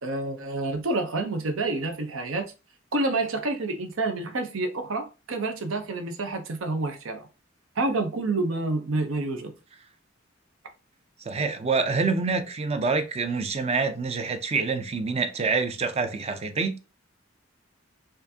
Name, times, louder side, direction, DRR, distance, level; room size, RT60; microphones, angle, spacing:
voice 1, 0.0-2.5 2.9-7.3 7.8-9.5, right 2 dB, 80° right, 0.7 m, -28 dB
voice 2, 11.3-16.8, right 4 dB, 30° right, 0.5 m, -26 dB
4.5 x 2.5 x 2.7 m
head